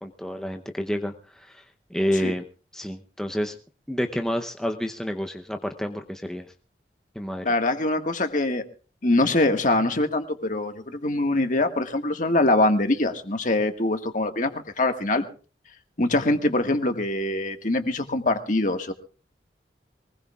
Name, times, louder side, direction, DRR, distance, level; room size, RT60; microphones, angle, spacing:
voice 1, 0.0-1.6 1.9-2.5 2.7-3.6 3.9-6.5 7.2-7.5, equal, 5° left, 4 dB, 0.7 m, -29 dB
voice 2, 7.4-8.6 9.0-15.2 16.0-18.9, left 2 dB, 50° left, 6 dB, 1.7 m, -23 dB
23.5 x 20.0 x 2.4 m, 0.37 s
head